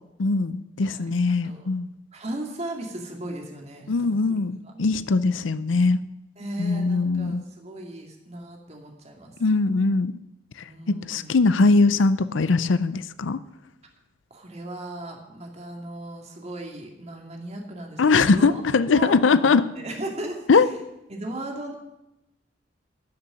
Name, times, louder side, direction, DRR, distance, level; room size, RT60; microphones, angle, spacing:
voice 1, 0.2-1.9 3.9-6.0 6.6-7.4 9.4-10.1 10.9-13.4 18.0-19.6 20.5-20.7, left 4 dB, 85° left, 15 dB, 0.6 m, -21 dB
voice 2, 0.8-1.7 2.1-4.2 4.7-4.8 6.4-9.3 10.6-11.3 14.3-18.6 18.9-19.4 19.8-20.7 21.1-21.7, right 1 dB, 35° right, 1 dB, 2.5 m, -36 dB
13.5 x 6.8 x 10.0 m, 0.92 s
head